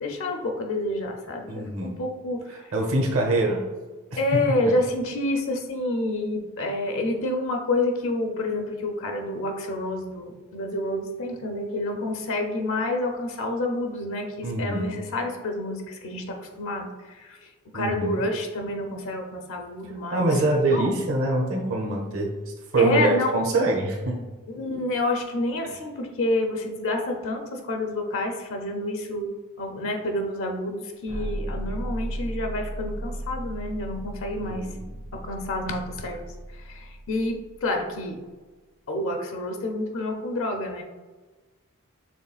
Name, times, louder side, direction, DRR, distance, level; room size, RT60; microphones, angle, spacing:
voice 1, 0.0-2.6 4.2-16.9 17.1-17.4 17.7-20.9 22.8-23.3 24.5-34.6 35.1-36.2 36.7-38.2 38.9-40.8, left 2 dB, 60° left, 3 dB, 0.6 m, -28 dB
voice 2, 1.5-1.9 2.5-3.7 4.1-4.4 14.4-15.0 17.7-18.2 20.1-22.3 22.7-24.2 34.4-34.9, right 2 dB, 65° right, 0 dB, 0.9 m, -24 dB
sound 1, 31.1-38.0, right 1 dB, 85° right, 1.1 m, -35 dB
6.2 x 3.5 x 2.3 m, 1.3 s
head